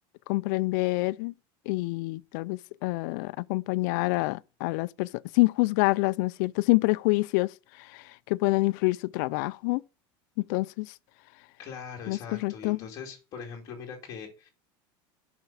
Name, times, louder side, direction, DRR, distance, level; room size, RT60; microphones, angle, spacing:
voice 1, 0.3-1.3 1.7-9.8 10.4-10.9 12.1-12.8, left 23 dB, 55° left, 0.4 m, -27 dB
voice 2, 11.6-14.5, left 6 dB, 30° left, 2.6 m, -41 dB
7.3 x 5.8 x 6.8 m
cardioid pair, 175°, 12 cm